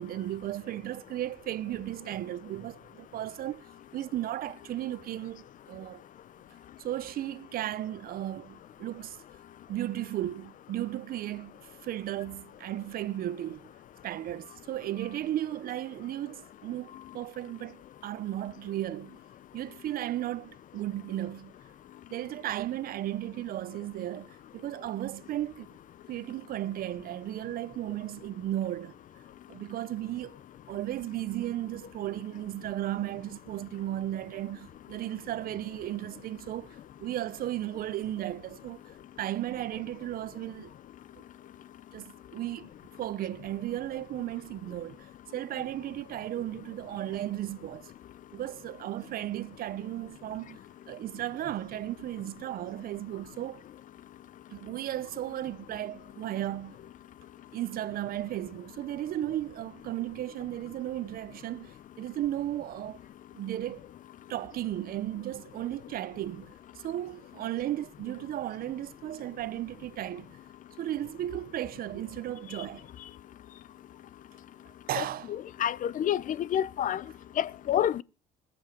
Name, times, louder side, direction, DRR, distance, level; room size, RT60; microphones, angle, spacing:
voice 1, 0.0-3.7 3.9-6.0 6.8-9.2 9.7-13.6 14.0-19.2 19.5-21.5 22.1-25.7 26.1-28.9 29.5-30.4 30.7-38.8 39.2-40.7 41.2-41.3 41.9-42.7 43.0-47.9 48.3-50.6 50.9-53.6 54.5-56.8 57.5-63.0 63.3-63.8 64.3-70.4 70.8-72.9 74.9-75.4, right 13 dB, 60° right, 0.7 m, -35 dB
voice 2, 75.6-77.0 77.4-78.0, left 10 dB, 50° left, 0.6 m, -28 dB
20.5 x 7.9 x 6.5 m
cardioid pair, 110°, 17 cm